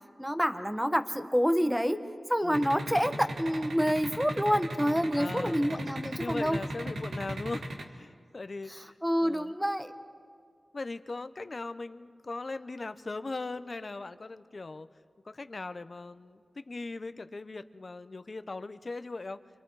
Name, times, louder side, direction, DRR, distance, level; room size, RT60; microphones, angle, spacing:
voice 1, 0.2-2.0 2.3-6.6 8.7-9.9, equal, 5° right, 9 dB, 1.2 m, -28 dB
sound 1, 2.5-7.8, right 1 dB, 85° right, 1.9 m, -36 dB
voice 2, 5.2-5.6 6.2-9.0 9.2-9.6 10.7-14.9 15.2-19.4, left 3 dB, 45° left, 12 dB, 0.8 m, -39 dB
29.5 x 26.0 x 4.8 m, 2.1 s
wide cardioid pair, 65°, 0 cm